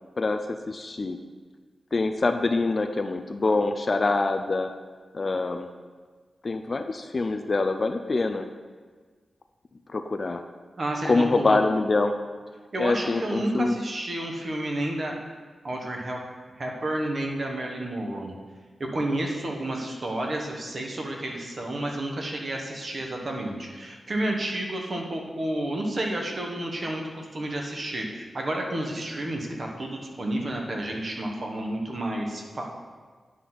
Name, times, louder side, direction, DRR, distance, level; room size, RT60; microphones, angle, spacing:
voice 1, 0.7-1.2 1.9-4.7 5.1-5.7 6.4-8.5 9.9-10.4 11.0-12.1 12.8-13.8, left 3 dB, 35° left, 7 dB, 0.4 m, -25 dB
voice 2, 10.8-11.6 12.7-15.1 15.6-16.2 16.6-18.3 18.8-32.6, right 1 dB, 35° right, 1 dB, 1.1 m, -30 dB
10.0 x 4.0 x 5.9 m, 1.5 s
wide cardioid pair, 175°, 0 cm